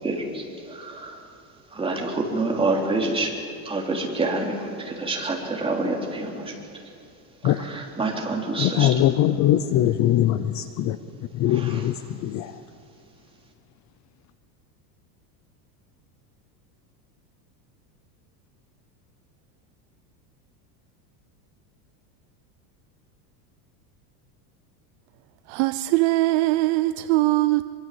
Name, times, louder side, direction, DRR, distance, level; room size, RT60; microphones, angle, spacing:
voice 1, 0.0-1.2 1.7-3.4 3.6-6.6 7.4-9.0 11.5-11.9, right 2 dB, 10° right, 3.7 m, -27 dB
voice 2, 8.6-11.0 11.3-12.5, left 12 dB, 35° left, 0.7 m, -22 dB
voice 3, 25.5-27.6, right 19 dB, 50° right, 0.6 m, -21 dB
25.5 x 24.5 x 7.8 m
supercardioid pair, 150°, 49 cm